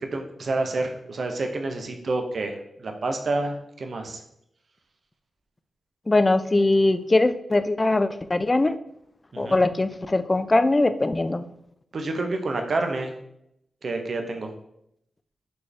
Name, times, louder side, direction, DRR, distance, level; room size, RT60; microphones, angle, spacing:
voice 1, 0.1-4.2 9.3-9.6 11.9-13.1 13.8-14.5, right 2 dB, 65° right, 5 dB, 0.6 m, -28 dB
voice 2, 6.1-8.8 9.4-11.4, left 2 dB, 30° left, 11 dB, 0.3 m, -21 dB
4.2 x 3.3 x 3.2 m, 0.77 s
supercardioid pair, 40°, 0 cm